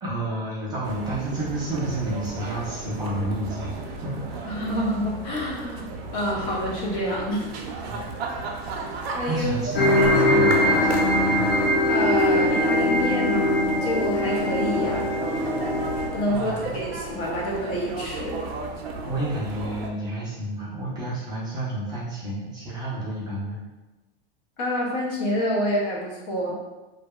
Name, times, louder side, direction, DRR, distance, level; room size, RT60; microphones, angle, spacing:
voice 1, 0.0-4.5 7.8-8.0 9.3-10.9 11.3-11.5 16.3-16.9 19.1-23.6, right 1 dB, 15° right, -8 dB, 0.4 m, -30 dB
sound 1, 0.8-19.9, right 3 dB, 85° right, 0.5 m, -35 dB
voice 2, 4.5-5.8 6.1-7.5 7.8-8.1 9.1-10.9 11.9-15.1 16.1-18.4 24.6-26.5, equal, 40° left, -2 dB, 0.7 m, -28 dB
sound 2, 9.7-16.1, left 1 dB, 80° left, 0.8 m, -21 dB
2.6 x 2.2 x 2.2 m, 1.1 s
supercardioid pair, 145°, 30 cm